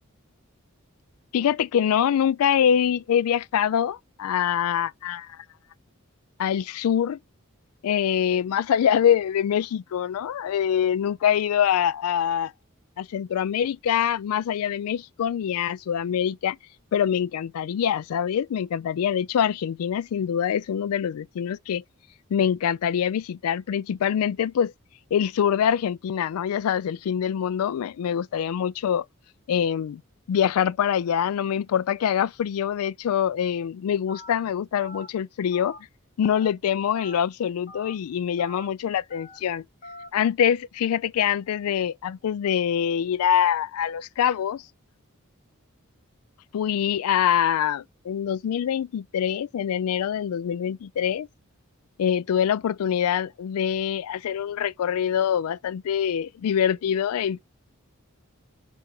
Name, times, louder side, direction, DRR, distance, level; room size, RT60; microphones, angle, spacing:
voice 1, 1.3-5.4 6.4-7.2 7.8-12.5 13.0-16.6 16.9-21.8 22.3-24.7 25.1-29.1 29.5-30.0 30.3-35.8 36.2-39.6 40.1-44.6 46.5-51.3 52.0-57.4, left 9 dB, 80° left, 0.3 m, -24 dB
Telephone, 34.1-34.4 34.8-35.1 35.5-35.8 36.2-36.5 36.9-37.2 37.7-37.9 38.4-38.7 39.1-39.4 39.8-40.1, left 1 dB, 40° left, 1.5 m, -44 dB
6.6 x 3.5 x 4.3 m
head